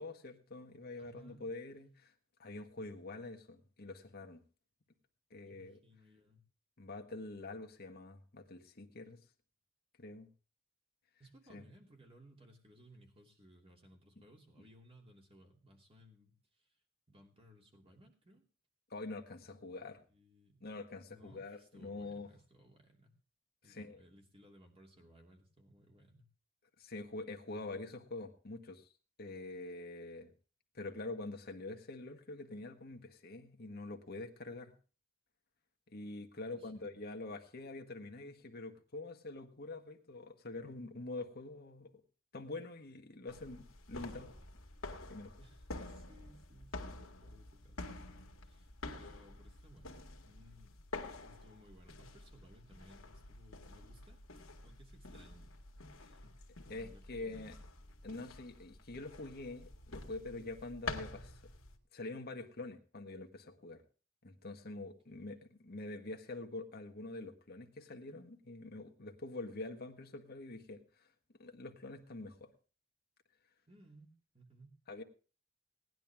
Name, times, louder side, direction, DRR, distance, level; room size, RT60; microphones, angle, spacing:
voice 1, 0.0-2.1 2.4-4.4 5.3-5.8 6.8-9.2 10.0-10.3 11.5-11.6 18.9-20.0 20.6-22.3 23.7-24.0 26.8-28.9 29.2-30.3 30.7-34.7 35.9-41.9 42.3-44.3 45.1-45.3 56.7-57.5 58.0-61.4 61.9-63.8 64.2-71.1 71.4-72.5 74.9-75.0, left 2 dB, 50° left, 4 dB, 1.6 m, -45 dB
voice 2, 1.0-1.4 5.4-6.4 11.2-16.7 17.1-18.4 20.1-20.7 21.1-23.2 23.6-26.3 36.4-36.9 45.4-50.7 51.2-55.5 56.0-57.6 65.1-65.4 73.7-74.8, equal, 30° right, 2 dB, 2.9 m, -61 dB
sound 1, 43.3-61.8, left 2 dB, 80° left, 1.9 m, -49 dB
18.0 x 10.5 x 3.6 m, 0.38 s
head